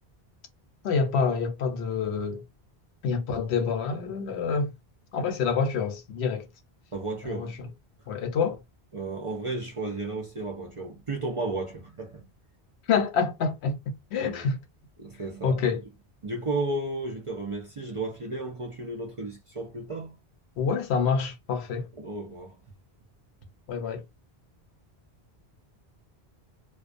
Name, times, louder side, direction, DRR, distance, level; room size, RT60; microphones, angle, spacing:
voice 1, 0.8-2.4 3.0-4.7 5.1-6.5 7.2-7.7 8.1-8.6 12.9-14.6 15.4-15.8 20.6-21.9 23.7-24.0, left 5 dB, 85° left, 0.9 m, -27 dB
voice 2, 6.9-7.6 8.9-12.3 14.2-14.5 15.0-15.6 16.2-20.2 21.9-22.6, right 2 dB, 40° right, 0.5 m, -33 dB
2.3 x 2.2 x 2.5 m
omnidirectional pair, 1.1 m